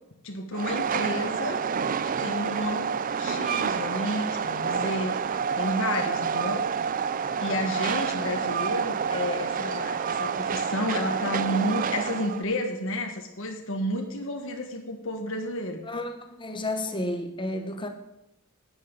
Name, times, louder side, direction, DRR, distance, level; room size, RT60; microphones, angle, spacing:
voice 1, 0.2-1.6 2.0-2.9 3.2-6.6 7.4-15.8, left 1 dB, 60° left, 2 dB, 1.6 m, -31 dB
Train, 0.5-12.4, right 6 dB, 40° right, 0.4 m, -28 dB
voice 2, 15.8-17.9, left 1 dB, 20° left, 6 dB, 1.0 m, -32 dB
9.6 x 9.3 x 5.4 m, 0.89 s
head